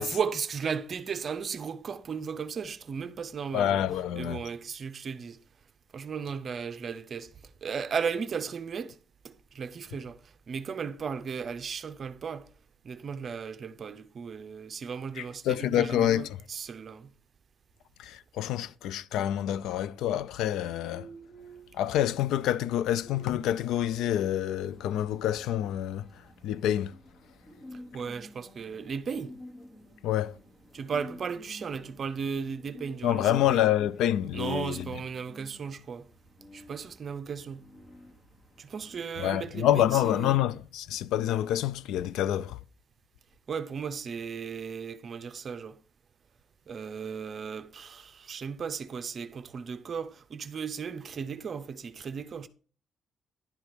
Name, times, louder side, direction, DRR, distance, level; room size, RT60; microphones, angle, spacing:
voice 1, 0.0-3.8 4.2-5.4 5.9-9.0 9.2-12.5 12.8-17.1 27.7-29.3 30.7-33.6 34.3-36.1 36.5-37.6 38.6-40.4 43.5-45.8 46.7-52.5, right 6 dB, 35° right, 0.6 m, -35 dB
voice 2, 3.5-4.4 15.2-16.3 18.0-21.1 21.7-26.1 26.4-27.0 30.0-30.3 33.0-34.9 39.2-42.6, left 11 dB, 90° left, 0.3 m, -27 dB
sound 1, 20.5-39.0, equal, 30° left, 1.4 m, -52 dB
10.5 x 4.7 x 5.1 m
cardioid pair, 150°, 0 cm